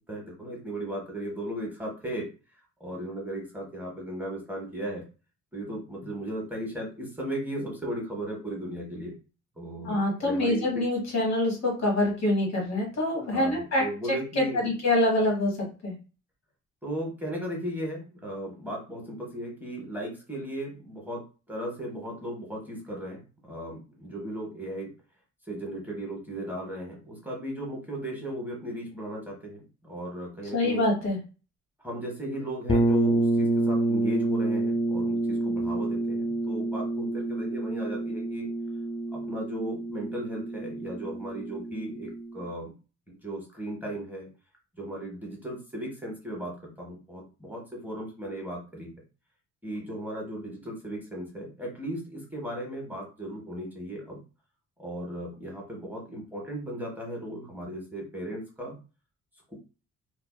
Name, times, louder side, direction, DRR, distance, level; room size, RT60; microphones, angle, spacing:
voice 1, 0.1-2.3 2.8-5.0 5.5-9.1 9.6-10.8 13.2-14.7 16.8-21.2 21.5-24.9 25.5-30.9 31.8-38.5 39.1-42.7 43.1-44.3 44.7-48.9 49.6-54.2 54.8-58.8, right 1 dB, 5° right, -2 dB, 1.0 m, -36 dB
voice 2, 9.8-13.8 14.4-15.5 15.8-15.9 30.5-31.2, left 1 dB, 60° left, -1 dB, 1.4 m, -25 dB
sound 1, 32.7-42.4, right 1 dB, 20° left, 0.3 m, -28 dB
2.5 x 2.3 x 2.2 m, 0.33 s
cardioid pair, 90°, 30 cm